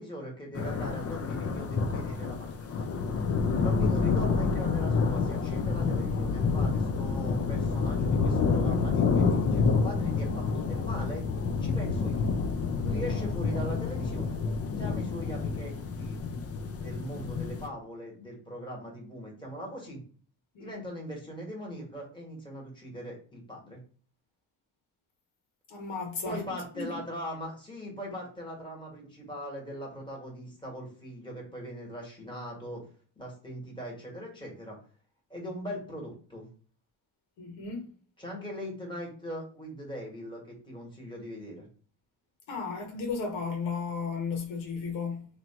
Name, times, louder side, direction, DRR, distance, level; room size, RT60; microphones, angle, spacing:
voice 1, 0.0-2.9 3.5-11.2 11.6-12.3 12.8-14.4 14.8-16.2 16.8-20.0 20.6-23.8 26.2-32.8 33.1-34.8 35.3-36.5 38.2-41.7, equal, 10° left, 1.6 m, -40 dB
sound 1, 0.5-17.7, left 4 dB, 35° left, 0.5 m, -28 dB
voice 2, 25.7-26.4 26.7-27.0 37.4-37.8 42.5-45.3, left 5 dB, 85° left, 1.2 m, -34 dB
3.0 x 2.6 x 4.3 m
cardioid pair, 105°, 44 cm